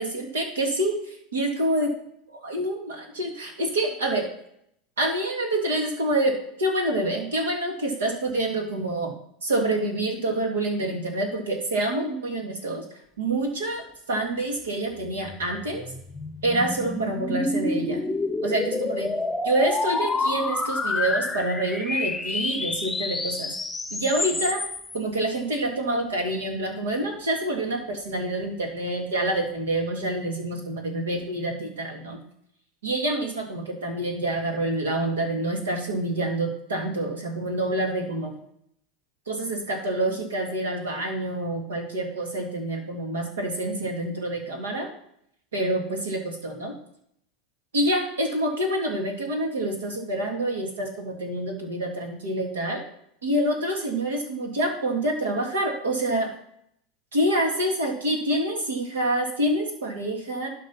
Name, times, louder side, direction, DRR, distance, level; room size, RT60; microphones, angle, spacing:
voice 1, 0.0-1.9 2.3-4.3 5.0-9.1 9.4-12.8 13.2-13.8 14.1-15.8 16.4-18.0 18.4-19.1 19.5-23.5 23.9-24.6 24.9-32.2 32.8-38.4 39.3-44.9 45.5-46.7 47.7-52.8 53.2-56.3 57.1-60.5, right 1 dB, 85° right, 2 dB, 2.4 m, -27 dB
sound 1, 15.3-25.0, left 2 dB, 10° left, 0.8 m, -28 dB
11.5 x 4.1 x 5.8 m, 0.72 s
hypercardioid pair, 90°, 0 cm